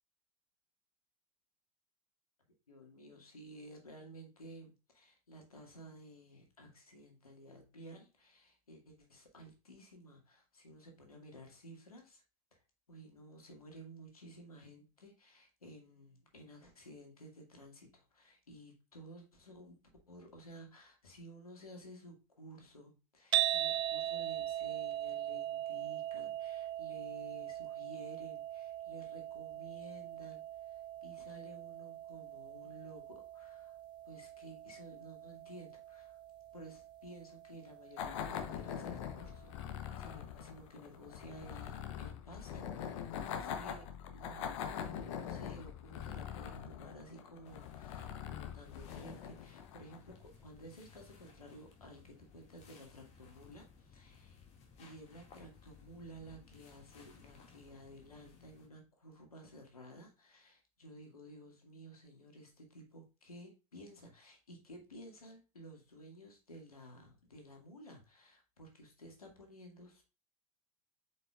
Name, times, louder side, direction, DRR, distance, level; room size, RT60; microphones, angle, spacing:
voice 1, 2.7-12.2 12.5-12.6 12.9-19.8 20.1-33.8 34.1-36.2 36.5-54.4 54.8-70.0, right 1 dB, 80° left, 2 dB, 2.1 m, -54 dB
sound 1, 23.3-39.6, right 13 dB, 25° right, 0.4 m, -41 dB
sound 2, 38.0-50.1, left 8 dB, 55° left, 0.9 m, -43 dB
sound 3, 47.4-58.7, left 6 dB, 35° left, 2.1 m, -60 dB
7.6 x 5.3 x 2.4 m, 0.30 s
figure-of-eight pair, 80°, 18 cm